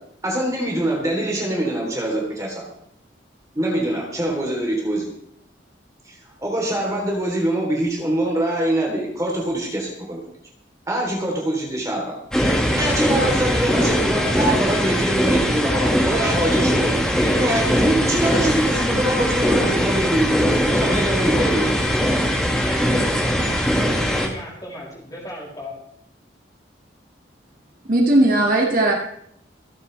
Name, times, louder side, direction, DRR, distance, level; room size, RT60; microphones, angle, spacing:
voice 1, 0.2-2.7 3.5-5.1 6.1-10.2 10.9-12.2 12.7-17.0 17.4-21.7, right 1 dB, 15° right, -3 dB, 3.6 m, -24 dB
voice 2, 12.3-13.2 17.1-17.7 22.5-23.4 24.0-25.8, left 1 dB, 20° left, -4 dB, 6.4 m, -34 dB
sound 1, 12.3-24.3, equal, 5° left, 2.0 m, -20 dB
voice 3, 27.9-28.9, right 1 dB, 45° right, -1 dB, 2.1 m, -17 dB
27.5 x 9.9 x 3.4 m, 0.71 s
head